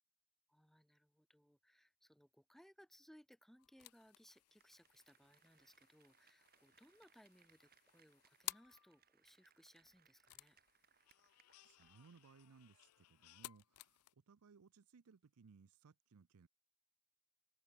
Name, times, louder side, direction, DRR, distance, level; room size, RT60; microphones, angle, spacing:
voice 1, 0.5-10.6, equal, ahead, 1.7 m, -66 dB
sound 1, 3.6-9.1 10.3-14.1, left 17 dB, 90° left, 0.4 m, -56 dB
Applause, 4.4-12.6 12.9-13.0, right 8 dB, 45° right, 3.1 m, -75 dB
voice 2, 11.6-16.5, right 5 dB, 80° right, 0.5 m, -65 dB
open air
head